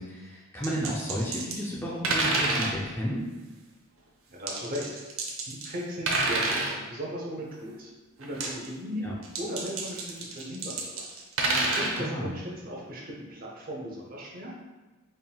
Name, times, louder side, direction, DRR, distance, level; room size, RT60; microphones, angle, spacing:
voice 1, 0.0-3.2 9.0-9.1 12.0-12.4, equal, 10° left, -5 dB, 0.5 m, -32 dB
sound 1, 0.6-1.6 2.0-2.8 4.5-5.8 6.1-6.8 8.2-8.7 9.2-12.0, right 2 dB, 80° right, 0.7 m, -28 dB
voice 2, 4.3-4.9 5.5-7.9 8.2-9.1 9.4-10.0 10.3-11.1 11.7-14.5, equal, 45° right, -2 dB, 0.8 m, -37 dB
4.3 x 3.6 x 2.3 m, 1.2 s
head